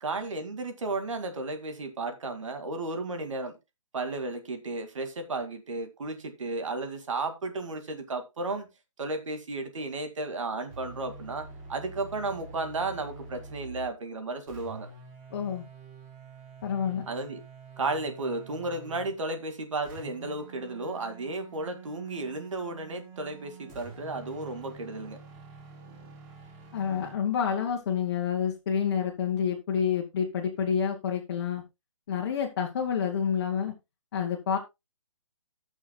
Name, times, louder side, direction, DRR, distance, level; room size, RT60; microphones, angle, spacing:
voice 1, 0.0-3.6 3.9-8.7 9.0-14.9 17.1-17.4 17.8-25.2, right 2 dB, 70° right, 2.2 m, -34 dB
sound 1, 10.7-14.0 14.5-19.2 19.8-27.2, right 4 dB, 20° right, 3.3 m, -47 dB
voice 2, 15.3-15.6 16.6-17.1 26.7-31.6 32.1-33.7 34.1-34.6, left 7 dB, 40° left, 1.6 m, -28 dB
18.5 x 6.4 x 2.2 m
hypercardioid pair, 165°, 17 cm